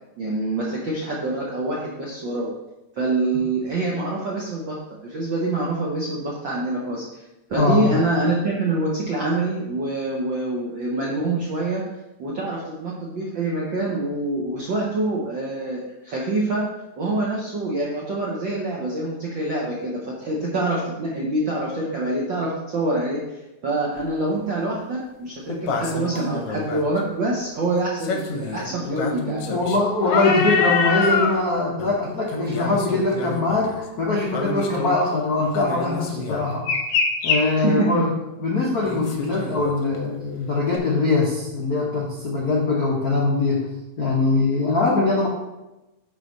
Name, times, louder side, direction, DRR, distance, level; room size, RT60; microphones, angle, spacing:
voice 1, 0.2-2.5 2.9-7.0 7.5-11.8 12.2-16.6 17.0-23.2 23.6-29.4 37.5-38.0, right 2 dB, 70° right, -4 dB, 1.1 m, -25 dB
voice 2, 7.5-8.0 25.8-26.3 28.7-28.8 29.5-36.7 37.2-38.1 38.4-43.7 44.0-45.3, left 3 dB, 85° left, -3 dB, 0.8 m, -22 dB
sound 1, 24.0-24.1 25.5-26.8 28.0-31.4 31.8-32.0 32.3-33.8 34.3-35.0 35.4-37.4 38.8-40.0 40.7-40.8, left 4 dB, 65° left, 1.5 m, -26 dB
11.0 x 4.0 x 4.0 m, 0.98 s
omnidirectional pair, 3.6 m